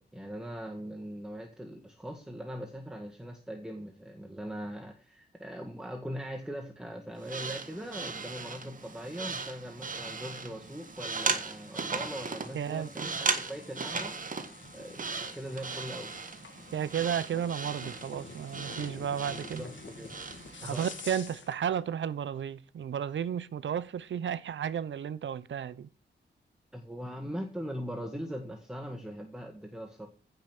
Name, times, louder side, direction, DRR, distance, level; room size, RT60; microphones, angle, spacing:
voice 1, 0.0-14.1 14.7-16.1 19.3-20.1 20.6-20.9 26.7-30.1, equal, 5° right, 1.7 m, -41 dB
sound 1, 7.2-21.1, right 4 dB, 45° right, 1.5 m, -37 dB
sound 2, 10.6-21.6, left 5 dB, 85° left, 1.8 m, -50 dB
voice 2, 12.5-12.9 16.7-19.7 20.6-25.9, right 8 dB, 90° right, 0.7 m, -33 dB
15.5 x 5.2 x 6.1 m
wide cardioid pair, 140°, 19 cm